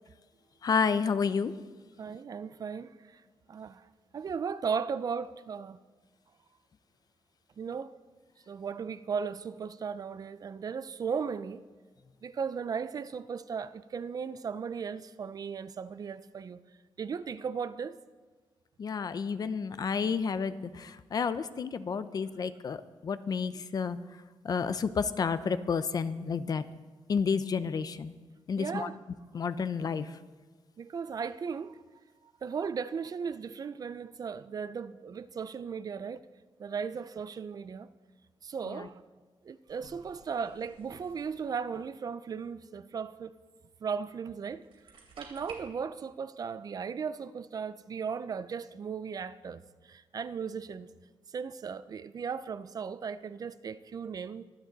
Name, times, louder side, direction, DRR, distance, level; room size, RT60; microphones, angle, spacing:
voice 1, 0.6-1.6 18.8-24.0 24.4-26.6 27.1-28.1 28.5-28.9 29.3-30.1 38.6-38.9, left 5 dB, 45° left, 0.5 m, -30 dB
voice 2, 2.0-3.2 3.5-3.8 4.1-5.8 7.6-7.9 8.5-11.6 12.2-16.6 17.0-18.0 28.6-29.0 30.8-31.8 32.4-36.2 36.6-37.9 38.4-39.0 39.4-43.3 43.8-44.6 45.2-50.9 51.3-54.4, right 6 dB, 40° right, 0.4 m, -36 dB
sound 1, 39.7-41.8 44.5-45.5, right 5 dB, 90° right, 3.2 m, -53 dB
24.0 x 9.0 x 4.0 m
wide cardioid pair, 160°, 9 cm